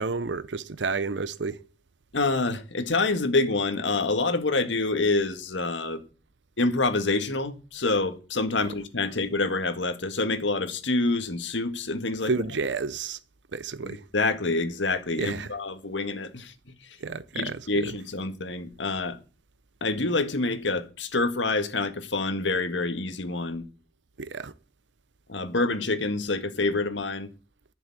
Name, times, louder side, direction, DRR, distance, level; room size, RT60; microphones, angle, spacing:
voice 1, 0.0-1.6 8.6-8.7 12.3-13.2 13.5-14.0 15.2-15.5 17.0-18.0 24.2-24.5, right 4 dB, 75° right, 0.8 m, -31 dB
voice 2, 2.1-6.0 6.6-12.3 13.9-16.5 17.3-19.2 19.8-23.6 25.3-27.3, left 3 dB, 80° left, 1.8 m, -27 dB
11.0 x 7.1 x 8.6 m
head